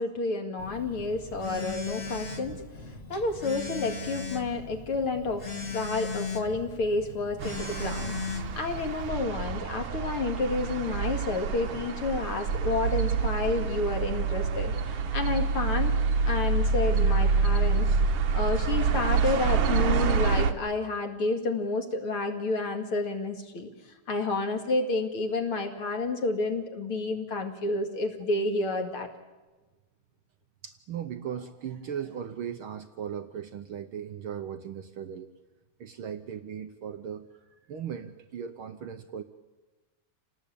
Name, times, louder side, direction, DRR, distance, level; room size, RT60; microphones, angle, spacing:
voice 1, 0.0-16.0 16.3-17.9 18.3-23.7 24.1-29.1, left 3 dB, 45° left, 4 dB, 2.8 m, -30 dB
Telephone, 0.6-9.1, left 4 dB, 20° left, 1.9 m, -38 dB
sound 1, 7.4-20.5, right 5 dB, 55° right, 1.6 m, -27 dB
voice 2, 30.6-35.3 35.8-37.4 37.7-39.2, right 8 dB, 80° right, 8 dB, 1.1 m, -37 dB
28.5 x 19.0 x 8.6 m, 1.2 s
omnidirectional pair, 3.7 m